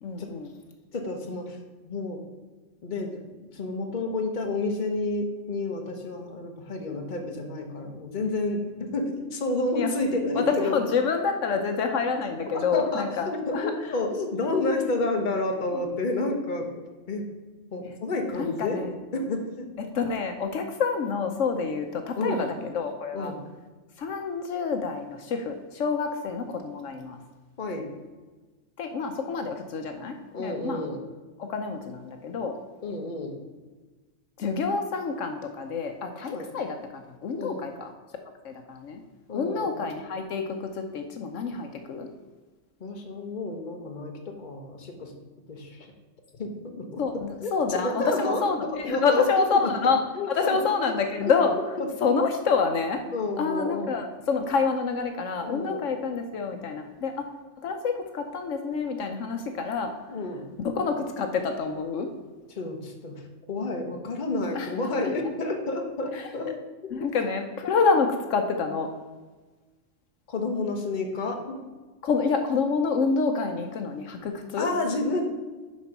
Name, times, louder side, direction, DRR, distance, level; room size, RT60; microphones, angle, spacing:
voice 1, 0.0-0.5 9.7-9.9 10.3-13.7 15.7-15.9 18.3-18.9 19.8-23.3 24.0-27.2 28.8-30.8 31.4-32.6 34.4-37.9 38.4-39.0 39.3-42.1 47.0-50.0 50.3-51.6 52.0-53.0 53.4-57.3 57.6-59.9 60.6-62.1 64.5-64.7 66.1-66.6 66.9-68.9 72.0-74.7, left 5 dB, 75° left, 5 dB, 1.1 m, -27 dB
voice 2, 0.9-1.6 1.8-2.2 2.8-3.1 3.5-10.8 12.5-13.1 13.5-16.7 17.1-17.3 17.7-18.9 19.1-19.7 22.2-22.4 23.1-23.4 27.6-27.9 30.3-31.0 32.8-33.4 36.3-36.5 37.4-37.6 39.3-39.7 42.8-45.1 45.5-45.9 46.4-47.0 47.4-48.4 48.9-49.6 50.1-50.6 51.2-51.3 51.8-51.9 53.1-53.9 55.4-55.8 60.1-60.5 62.5-66.5 66.8-66.9 70.3-71.6 74.6-75.2, left 2 dB, 40° left, 3 dB, 1.1 m, -30 dB
7.1 x 5.3 x 5.9 m, 1.3 s
omnidirectional pair, 1.3 m